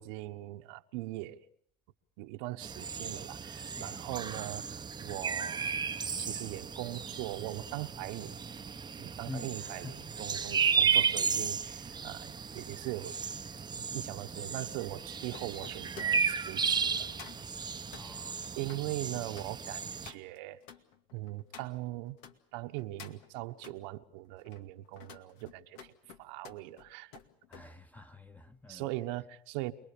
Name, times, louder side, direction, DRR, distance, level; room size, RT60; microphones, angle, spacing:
voice 1, 0.0-1.4 2.2-5.7 6.2-8.4 9.0-13.2 13.8-17.1 18.6-20.6 21.1-22.2 22.5-25.9 26.2-27.1 28.7-29.7, right 17 dB, 75° right, 1.3 m, -40 dB
sound 1, 2.6-20.1, right 6 dB, 20° right, 1.0 m, -34 dB
voice 2, 3.7-4.2 9.2-10.1 11.9-12.1 17.9-18.5 27.5-28.9, left 3 dB, 5° left, 1.4 m, -47 dB
Gabin-boite, 11.8-22.4 22.7-23.8 24.3-27.7 28.0-28.3, left 7 dB, 70° left, 2.3 m, -54 dB
28.0 x 21.0 x 7.1 m
supercardioid pair, 95°, 21 cm